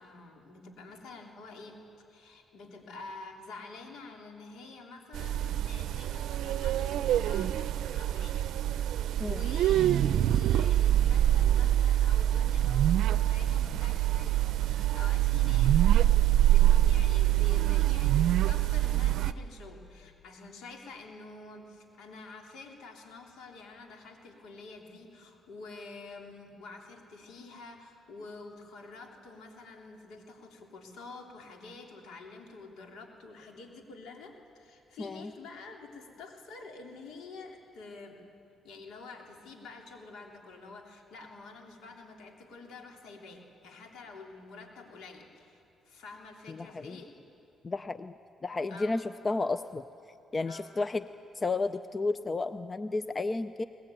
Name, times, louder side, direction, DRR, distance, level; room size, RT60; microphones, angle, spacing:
voice 1, 0.0-8.5 9.2-15.8 16.1-38.2 38.6-47.1 48.7-49.0 50.4-50.7, left 3 dB, 80° left, 2 dB, 3.3 m, -48 dB
sound 1, 5.1-19.3, right 12 dB, 80° right, 0.5 m, -25 dB
voice 2, 35.0-35.3 46.5-47.0 47.6-48.1 48.4-49.8 50.3-51.0 51.3-53.6, left 3 dB, 30° left, 13 dB, 0.5 m, -32 dB
22.0 x 19.5 x 9.1 m, 2.8 s
cardioid pair, 90°, 0 cm